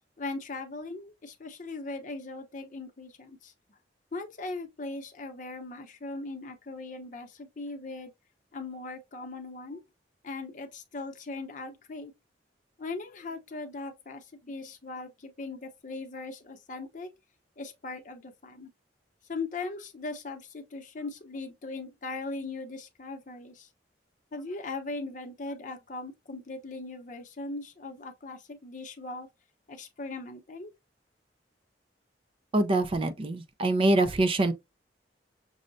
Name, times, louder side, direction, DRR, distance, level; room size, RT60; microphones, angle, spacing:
voice 1, 0.2-3.8 4.1-8.1 8.5-9.8 10.2-12.1 12.8-17.1 17.6-18.7 19.3-23.7 24.3-29.3 29.7-30.7, left 3 dB, 45° left, 0.7 m, -39 dB
voice 2, 32.5-34.5, right 2 dB, 30° right, 0.4 m, -24 dB
6.1 x 2.1 x 2.6 m
head